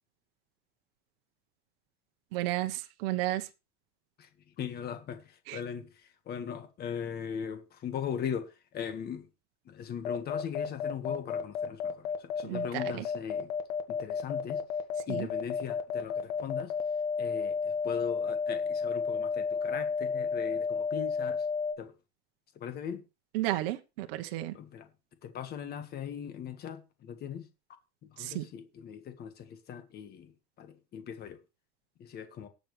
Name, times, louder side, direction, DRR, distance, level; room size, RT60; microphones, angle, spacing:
voice 1, 2.3-3.5 5.5-5.6 12.4-13.0 15.1-15.3 23.3-24.6 28.2-28.5, right 16 dB, 60° right, 1.1 m, -33 dB
voice 2, 4.6-5.9 6.3-9.3 9.6-13.5 13.9-14.6 15.1-16.7 17.2-21.4 21.8-21.9 22.5-23.0 24.5-24.9 25.2-27.5 28.1-30.3 30.6-31.4 32.0-32.5, left 8 dB, 30° left, 1.7 m, -39 dB
sound 1, 10.0-21.7, left 5 dB, 75° left, 2.0 m, -31 dB
19.0 x 7.3 x 3.3 m
supercardioid pair, 145°, 31 cm